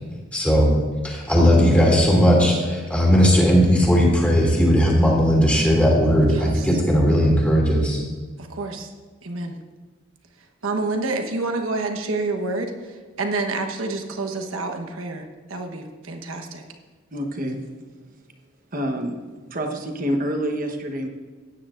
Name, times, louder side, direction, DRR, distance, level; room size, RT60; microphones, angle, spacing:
voice 1, 0.3-0.7 1.0-8.0, equal, 5° left, -3 dB, 2.6 m, -17 dB
voice 2, 6.3-6.7 8.4-8.9 9.2-9.5 10.6-16.6, right 3 dB, 85° right, 4 dB, 1.1 m, -28 dB
voice 3, 17.1-17.6 18.7-19.2 19.5-21.1, equal, 45° right, 4 dB, 1.1 m, -27 dB
16.0 x 9.7 x 2.5 m, 1.5 s
head